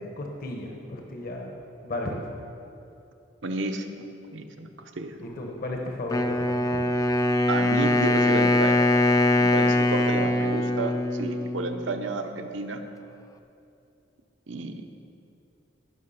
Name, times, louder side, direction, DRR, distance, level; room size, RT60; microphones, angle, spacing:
voice 1, 0.0-1.5 1.8-2.3 5.2-6.9 10.0-10.3, left 1 dB, 50° left, 1 dB, 1.2 m, -34 dB
voice 2, 3.4-4.0 4.3-5.2 7.5-8.9 9.4-12.8 14.5-14.9, right 2 dB, 75° right, 5 dB, 0.9 m, -31 dB
Wind instrument woodwind instrument, 6.1-12.1, left 1 dB, 20° left, 0.4 m, -23 dB
17.5 x 5.9 x 5.7 m, 2.7 s
head